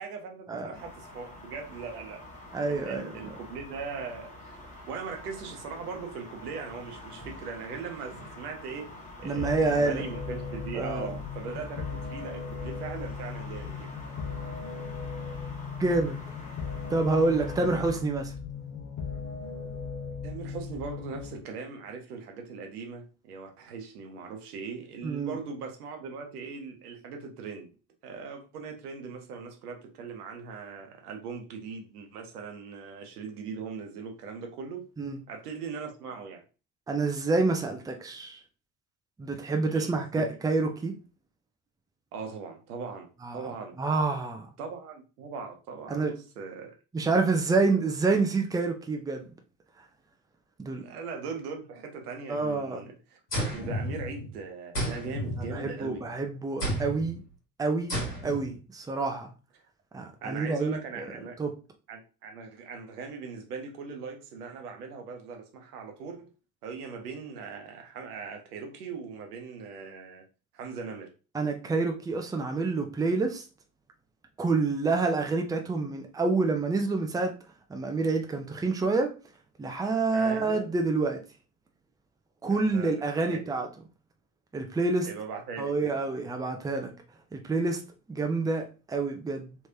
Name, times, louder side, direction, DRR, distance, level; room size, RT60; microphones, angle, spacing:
voice 1, 0.0-2.2 2.7-4.6 4.9-13.9 20.2-27.7 28.0-34.9 35.3-36.4 39.7-40.2 42.1-43.8 44.6-46.7 50.8-53.2 53.5-56.0 60.2-61.4 61.9-66.3 66.6-70.2 70.5-71.1 80.1-80.7 82.5-83.6 85.0-85.9, right 5 dB, 75° right, 0.9 m, -40 dB
sound 1, 0.7-18.0, left 2 dB, 15° left, 1.5 m, -46 dB
voice 2, 2.5-3.3 9.2-10.0 10.7-11.1 15.8-16.2 16.9-18.3 25.0-25.4 35.0-35.2 36.9-38.4 39.2-40.9 43.2-43.5 43.8-44.5 45.9-46.1 46.9-49.3 50.6-50.8 52.3-52.9 55.4-57.2 57.6-59.3 59.9-61.1 61.4-61.5 71.3-73.4 74.4-77.3 77.7-79.1 79.6-81.2 82.4-83.7 84.5-85.1 85.6-86.9 87.3-87.8 88.1-89.6, right 3 dB, 10° right, 0.6 m, -28 dB
sound 2, 9.4-21.4, left 5 dB, 40° left, 1.0 m, -37 dB
sound 3, 53.3-54.4 54.7-56.0 56.6-57.1 57.9-58.5, equal, 90° left, 1.5 m, -32 dB
3.3 x 3.2 x 2.7 m
figure-of-eight pair, 60°, 46 cm